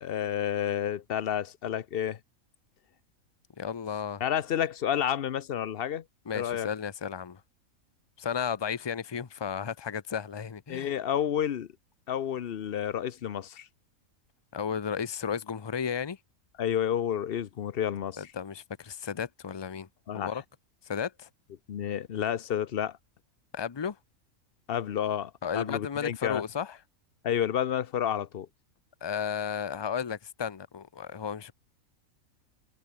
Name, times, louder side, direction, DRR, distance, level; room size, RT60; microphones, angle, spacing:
voice 1, 0.0-2.2 4.2-6.0 6.3-6.7 10.7-11.7 12.1-13.7 16.6-18.3 20.1-20.4 21.7-23.0 24.7-26.4 27.2-28.5, left 9 dB, 50° left, 0.8 m, -30 dB
voice 2, 3.6-4.2 6.3-7.4 8.2-10.9 14.5-16.2 18.2-19.9 20.1-20.4 20.9-21.3 23.5-24.0 25.4-26.8 29.0-31.5, left 7 dB, 30° left, 0.4 m, -34 dB
omnidirectional pair, 1.5 m